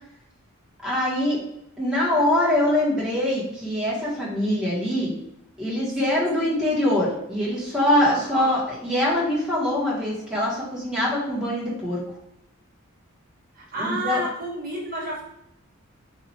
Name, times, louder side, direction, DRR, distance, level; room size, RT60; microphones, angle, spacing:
voice 1, 0.8-1.4 1.8-5.1 5.6-12.0 13.8-14.2, left 1 dB, 5° right, -7 dB, 1.2 m, -23 dB
voice 2, 6.0-6.6 8.1-8.5 13.5-15.2, right 1 dB, 45° right, -5 dB, 1.1 m, -32 dB
4.1 x 2.6 x 4.3 m, 0.81 s
head